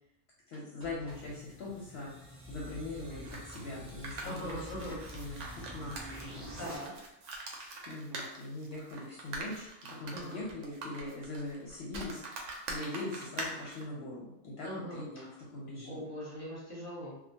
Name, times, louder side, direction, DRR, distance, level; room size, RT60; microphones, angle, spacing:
voice 1, 0.5-2.1 2.5-4.6 4.9-5.4 5.7-5.9 6.2-6.6 7.9-9.7 10.0-12.2 12.7-16.1, left 2 dB, 65° left, -5 dB, 0.7 m, -41 dB
sound 1, 0.5-6.8, equal, 15° right, 0.5 m, -47 dB
sound 2, 3.2-13.8, right 2 dB, 85° right, 0.9 m, -43 dB
voice 2, 4.2-5.0 6.6-6.9 10.1-10.5 14.6-15.1 15.8-17.2, equal, 15° left, -6 dB, 0.7 m, -41 dB
2.1 x 2.1 x 2.7 m, 0.83 s
omnidirectional pair, 1.2 m